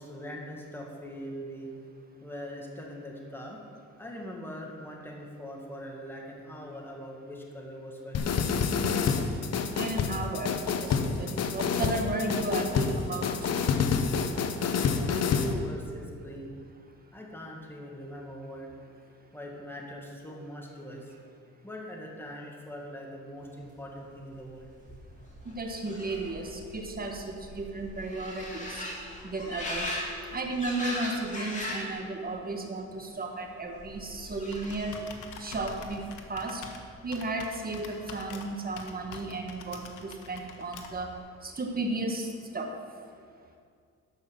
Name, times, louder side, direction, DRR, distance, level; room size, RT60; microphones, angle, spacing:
voice 1, 0.0-1.7 2.2-3.6 4.0-8.4 14.9-16.6 17.1-18.7 19.3-21.1 21.6-24.7, equal, 5° left, -1 dB, 1.9 m, -41 dB
sound 1, 8.1-15.5, left 6 dB, 55° left, 0.9 m, -28 dB
voice 2, 9.7-13.3 25.4-28.9 29.2-30.0 30.3-34.9 35.4-36.0 36.3-36.6 37.0-41.1 41.4-42.3 42.5-42.7, right 2 dB, 30° right, 3 dB, 1.6 m, -34 dB
sound 2, 24.4-24.5 24.7-32.0 32.3-32.9 33.8-35.1 35.5-36.1, left 1 dB, 25° left, 3.0 m, -39 dB
Computer keyboard, 33.9-41.2, left 5 dB, 85° left, 1.2 m, -47 dB
12.0 x 5.6 x 6.9 m, 2.2 s
cardioid pair, 90°, 30 cm